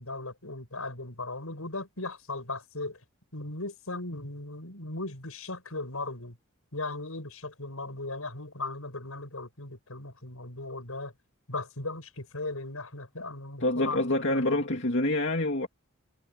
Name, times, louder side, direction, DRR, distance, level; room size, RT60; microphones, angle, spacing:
voice 1, 0.0-3.0 3.3-6.4 6.7-11.1 11.5-14.0 14.3-14.4, left 2 dB, 80° left, 6.6 m, -37 dB
voice 2, 13.6-15.7, left 1 dB, 55° left, 2.5 m, -26 dB
head